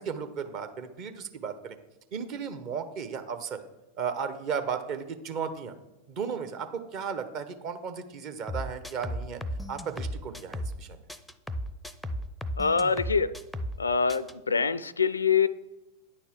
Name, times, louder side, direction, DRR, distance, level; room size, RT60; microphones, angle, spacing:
voice 1, 0.0-1.8 2.1-3.6 4.0-5.7 6.1-9.4 9.7-11.0, right 6 dB, 40° right, 1.0 m, -35 dB
sound 1, 8.5-10.8 11.1-13.8 14.1-14.3, equal, ahead, 0.6 m, -35 dB
voice 2, 12.6-13.3 13.8-15.5, left 5 dB, 75° left, 0.4 m, -25 dB
9.8 x 4.5 x 7.3 m
figure-of-eight pair, 90°, 0 cm